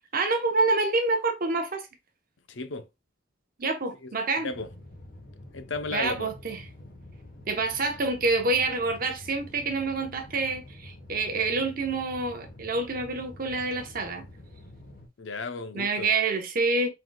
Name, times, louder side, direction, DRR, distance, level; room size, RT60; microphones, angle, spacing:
voice 1, 0.1-1.9 3.6-4.5 5.9-6.6 7.5-14.3 15.7-16.9, right 3 dB, 45° right, 0.8 m, -27 dB
voice 2, 2.5-2.9 4.0-4.1 4.4-4.7 5.5-6.3 15.2-16.1, left 3 dB, 65° left, 0.6 m, -34 dB
sound 1, 4.5-15.1, left 1 dB, 45° left, 1.3 m, -47 dB
4.6 x 3.8 x 2.2 m
head